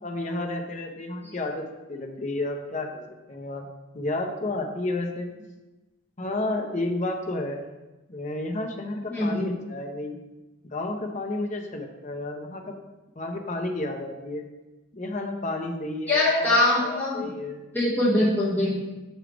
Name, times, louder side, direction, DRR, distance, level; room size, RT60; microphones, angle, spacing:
voice 1, 0.0-3.0 3.3-3.7 3.9-5.3 6.2-7.6 8.1-10.2 10.6-12.7 13.2-14.4 14.9-17.6, left 2 dB, 35° left, 3 dB, 0.7 m, -31 dB
voice 2, 9.1-9.5 16.1-17.3 17.7-18.8, left 1 dB, 10° left, -9 dB, 1.8 m, -23 dB
6.3 x 4.9 x 3.4 m, 1.1 s
head